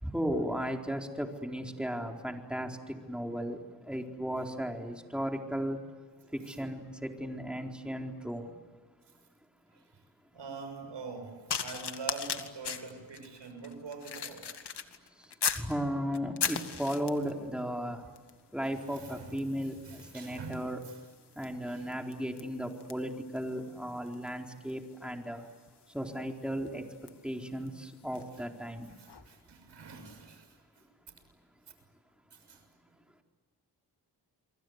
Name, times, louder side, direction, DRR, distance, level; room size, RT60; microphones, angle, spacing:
voice 1, 0.0-5.8 6.3-8.5 15.6-18.0 18.5-20.8 21.4-25.5 25.9-26.8 27.2-28.9, equal, ahead, 2 dB, 4.2 m, -35 dB
voice 2, 10.3-14.7 18.7-21.0 21.7-21.9 28.9-30.8 32.3-32.6, right 4 dB, 85° right, 7 dB, 6.6 m, -45 dB
sound 1, 11.5-15.7 16.1-17.4 18.2-18.4 18.7-28.4 29.1-29.2, left 6 dB, 70° left, 2.0 m, -39 dB
29.5 x 23.5 x 8.1 m, 1.5 s
cardioid pair, 60°, 42 cm